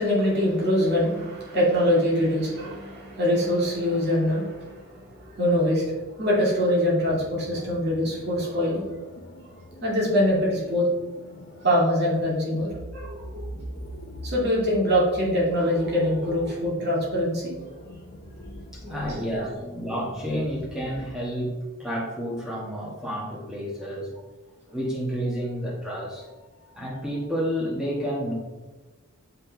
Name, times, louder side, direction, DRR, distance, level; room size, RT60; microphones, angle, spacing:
voice 1, 0.0-8.8 9.8-10.9 11.6-13.5 14.2-17.5 18.8-19.5, equal, 45° right, -5 dB, 2.5 m, -24 dB
sound 1, 7.0-21.1, equal, 45° left, 0.9 m, -43 dB
voice 2, 18.7-24.1 24.7-28.3, equal, 5° right, -4 dB, 1.6 m, -30 dB
6.7 x 5.7 x 4.1 m, 1.2 s
head